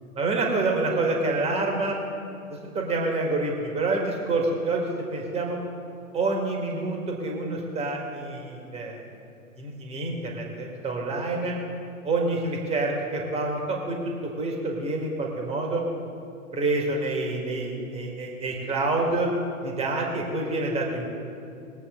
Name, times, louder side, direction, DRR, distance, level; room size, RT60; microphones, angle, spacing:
voice 1, 0.2-2.0 2.5-5.6 6.1-9.1 9.6-11.5 12.0-14.0 14.2-15.8 16.5-19.3 19.6-21.1, right 2 dB, 15° right, 0 dB, 2.0 m, -27 dB
21.0 x 8.3 x 3.9 m, 2.6 s
figure-of-eight pair, 110°, 43 cm